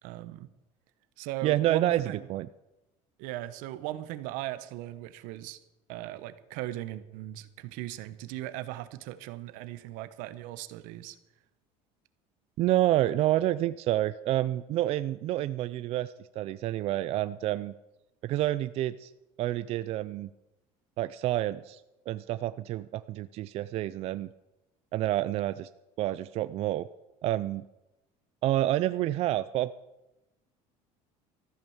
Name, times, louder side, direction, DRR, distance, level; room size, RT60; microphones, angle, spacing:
voice 1, 0.0-0.5 1.2-2.3 3.2-5.6 5.9-11.2, right 15 dB, 80° right, 13 dB, 1.0 m, -38 dB
voice 2, 1.4-2.0 2.3-2.5 12.6-17.7 18.2-19.1 19.4-20.3 21.0-21.8 22.1-24.3 24.9-25.7 26.0-26.9 27.2-27.6 28.4-29.7, right 14 dB, 50° right, 14 dB, 0.4 m, -28 dB
14.0 x 8.7 x 7.2 m, 0.97 s
cardioid pair, 145°, 14 cm